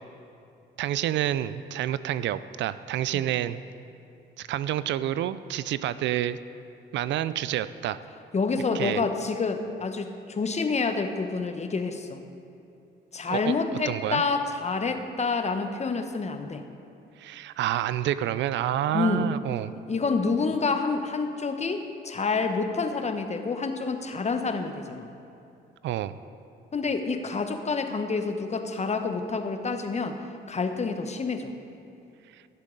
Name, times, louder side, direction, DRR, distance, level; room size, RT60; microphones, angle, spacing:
voice 1, 0.8-3.6 4.4-6.4 6.9-8.0 8.7-9.0 13.3-13.5 13.9-14.2 17.2-19.7 25.8-26.1, right 12 dB, 65° right, 15 dB, 0.4 m, -28 dB
voice 2, 8.3-12.2 13.1-16.6 18.9-19.3 19.9-25.1 26.7-30.2 30.5-31.5, left 4 dB, 35° left, 7 dB, 1.0 m, -28 dB
16.5 x 7.4 x 3.9 m, 2.7 s
supercardioid pair, 60°, 20 cm